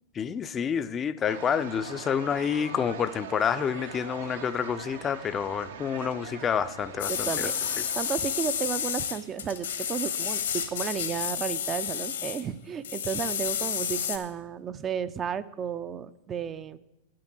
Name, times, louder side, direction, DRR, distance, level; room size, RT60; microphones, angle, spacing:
voice 1, 0.1-7.5, left 7 dB, 25° left, 13 dB, 0.5 m, -28 dB
sound 1, 1.3-8.1, right 7 dB, 70° right, 1.1 m, -42 dB
sound 2, 7.0-12.4 12.8-14.2, left 9 dB, 75° left, 1.3 m, -31 dB
voice 2, 7.1-7.5 8.0-16.8, right 8 dB, 30° right, 14 dB, 0.5 m, -33 dB
9.7 x 7.6 x 7.3 m, 0.98 s
hypercardioid pair, 100°, 0 cm